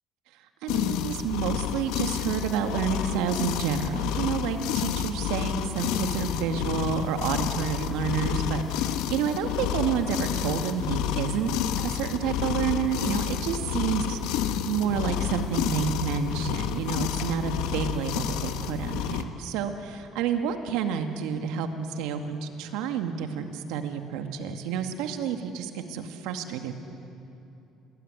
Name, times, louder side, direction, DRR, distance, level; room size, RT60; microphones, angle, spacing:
voice 1, 0.6-26.8, right 7 dB, 90° right, 6 dB, 2.2 m, -29 dB
sound 1, 0.7-19.2, left 10 dB, 90° left, 1.3 m, -30 dB
27.5 x 20.0 x 9.9 m, 2.9 s
cardioid pair, 115°, 0 cm